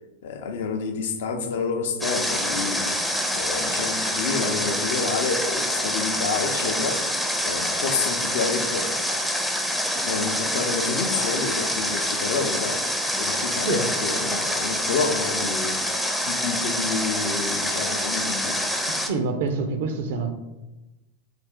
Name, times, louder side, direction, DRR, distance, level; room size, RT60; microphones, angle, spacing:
voice 1, 0.2-2.9 3.3-8.9 10.1-12.8 13.2-15.8 16.2-18.6, left 4 dB, 75° left, 6 dB, 0.5 m, -29 dB
Water, 2.0-19.1, equal, 5° left, 0.4 m, -26 dB
voice 2, 18.9-20.3, right 4 dB, 70° right, 7 dB, 0.5 m, -26 dB
3.3 x 2.5 x 3.6 m, 1.0 s
hypercardioid pair, 110°, 0 cm